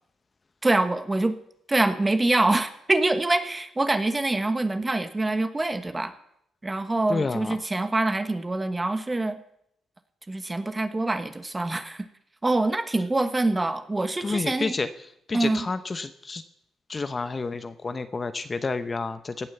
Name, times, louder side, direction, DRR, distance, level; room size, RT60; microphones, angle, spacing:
voice 1, 0.6-1.4 1.7-6.1 6.6-9.4 10.3-12.1 12.4-14.7 15.3-15.7, right 2 dB, 20° right, 9 dB, 1.4 m, -25 dB
voice 2, 7.1-7.6 14.2-14.9 15.3-16.4 16.9-19.5, left 4 dB, 30° left, 10 dB, 0.9 m, -29 dB
17.0 x 8.8 x 7.0 m, 0.73 s
cardioid pair, 90°, 0 cm